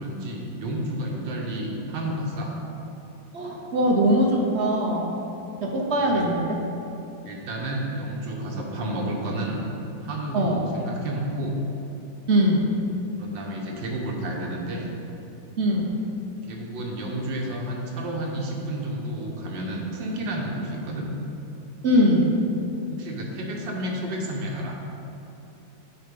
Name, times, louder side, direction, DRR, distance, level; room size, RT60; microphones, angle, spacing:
voice 1, 0.0-2.6 6.0-6.3 7.2-9.6 10.0-11.6 13.2-14.9 16.4-21.1 22.9-24.8, right 1 dB, 85° right, -1 dB, 1.8 m, -31 dB
voice 2, 3.3-5.1 5.6-6.6 10.3-10.6 12.3-12.7 15.6-15.9 21.8-22.3, equal, 50° right, -1 dB, 0.8 m, -21 dB
9.4 x 4.1 x 5.3 m, 2.8 s
omnidirectional pair, 2.0 m